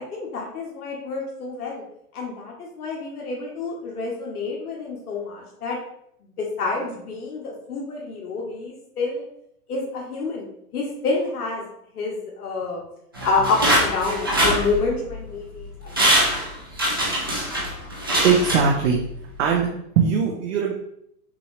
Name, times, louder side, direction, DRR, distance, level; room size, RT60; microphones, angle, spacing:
voice 1, 0.0-1.8 2.1-5.8 6.2-9.3 9.7-10.5 10.7-11.7 11.9-12.8 13.2-16.2, left 3 dB, 70° left, -1 dB, 1.3 m, -28 dB
sound 1, 13.1-15.2 15.6-15.7 15.9-19.1 19.5-19.6, right 1 dB, 15° right, 0.3 m, -23 dB
voice 2, 18.2-19.0 19.4-20.7, right 6 dB, 50° right, -1 dB, 0.9 m, -20 dB
6.0 x 2.6 x 3.3 m, 0.74 s
hypercardioid pair, 150°, 47 cm